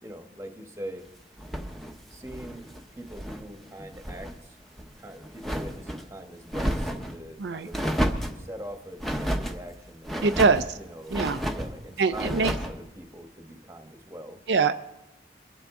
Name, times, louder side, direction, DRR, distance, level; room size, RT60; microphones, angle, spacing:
voice 1, 0.0-1.1 2.1-4.6 4.9-7.8 8.3-10.4 10.8-11.2 11.5-14.4, right 1 dB, 15° right, 5 dB, 1.2 m, -42 dB
sound 1, 1.4-3.5 3.8-4.3 4.7-6.0 6.5-7.1 7.7-8.4 9.0-9.6 10.0-10.7 11.1-11.7 12.1-12.8, equal, ahead, 0.9 m, -31 dB
voice 2, 10.2-10.8 11.1-11.4 12.0-12.5 14.5-14.7, right 4 dB, 70° right, 8 dB, 0.5 m, -23 dB
22.5 x 11.5 x 3.7 m, 0.97 s
head